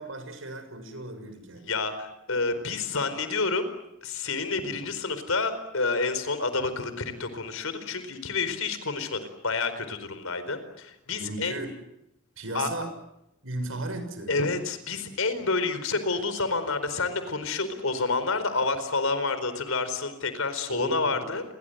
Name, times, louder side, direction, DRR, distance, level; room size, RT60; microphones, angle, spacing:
voice 1, 0.0-1.7 11.2-11.7 12.4-12.9 13.4-14.3 20.7-21.2, right 2 dB, 70° right, 9 dB, 6.8 m, -36 dB
voice 2, 1.7-3.7 4.0-11.6 12.5-12.7 14.3-21.5, left 3 dB, 85° left, 11 dB, 4.5 m, -29 dB
30.0 x 23.5 x 8.0 m, 0.86 s
head